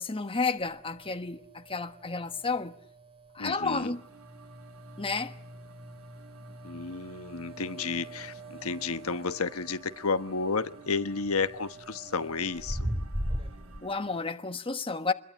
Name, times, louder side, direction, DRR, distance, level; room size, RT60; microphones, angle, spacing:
voice 1, 0.0-2.7 3.3-4.0 5.0-5.3 13.8-15.1, left 4 dB, 25° left, 1.3 m, -31 dB
sound 1, 0.6-13.8, right 1 dB, 25° right, 3.2 m, -41 dB
voice 2, 3.4-3.9 6.6-12.8, left 4 dB, 85° left, 1.2 m, -32 dB
sound 2, 3.6-14.3, right 4 dB, 75° right, 2.4 m, -54 dB
27.0 x 22.0 x 9.4 m
head